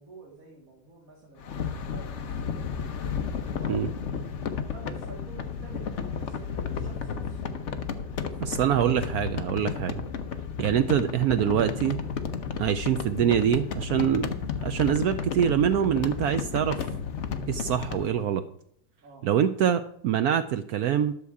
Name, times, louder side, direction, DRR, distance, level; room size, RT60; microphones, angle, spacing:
voice 1, 0.0-2.5 3.1-3.8 4.4-7.5 8.2-9.1 19.0-19.3, right 4 dB, 50° right, -3 dB, 2.2 m, -48 dB
sound 1, 1.4-18.1, left 6 dB, 55° left, 0.9 m, -33 dB
voice 2, 8.4-10.0 10.6-12.0 12.6-14.3 14.6-16.9 17.5-18.4 19.2-21.1, right 9 dB, 75° right, 10 dB, 0.9 m, -25 dB
11.0 x 6.9 x 4.7 m, 0.69 s
omnidirectional pair, 2.0 m